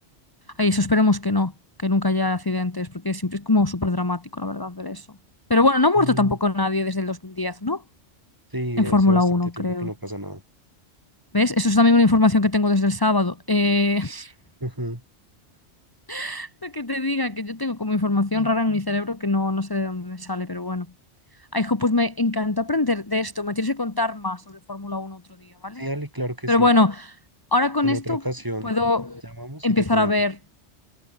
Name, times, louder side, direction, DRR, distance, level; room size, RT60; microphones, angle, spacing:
voice 1, 0.6-1.5 1.8-5.1 5.5-7.8 8.8-9.9 11.3-14.3 16.1-20.9 21.5-25.8 26.5-27.2 27.5-28.2 28.6-29.2 29.6-30.4, left 2 dB, 20° left, 1.3 m, -22 dB
voice 2, 6.0-6.4 8.5-10.4 14.6-15.0 25.8-26.7 27.8-28.7 29.2-30.1, right 1 dB, 20° right, 4.0 m, -31 dB
omnidirectional pair, 1.2 m